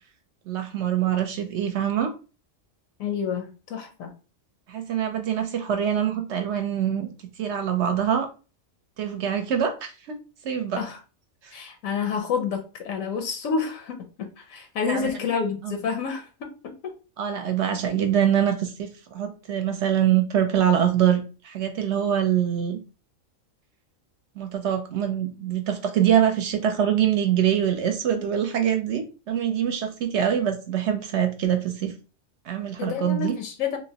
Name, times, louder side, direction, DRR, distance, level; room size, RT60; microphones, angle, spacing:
voice 1, 0.5-2.1 4.7-7.1 7.4-8.3 9.0-10.2 10.4-10.8 11.4-11.5 14.8-15.1 15.6-15.7 17.2-22.8 24.4-31.9 32.5-33.3, right 9 dB, 65° right, 6 dB, 0.8 m, -24 dB
voice 2, 3.0-4.1 10.8-11.0 11.5-16.9 32.8-33.8, left 6 dB, 85° left, 5 dB, 1.1 m, -29 dB
3.1 x 2.9 x 2.7 m, 0.33 s
omnidirectional pair, 1.4 m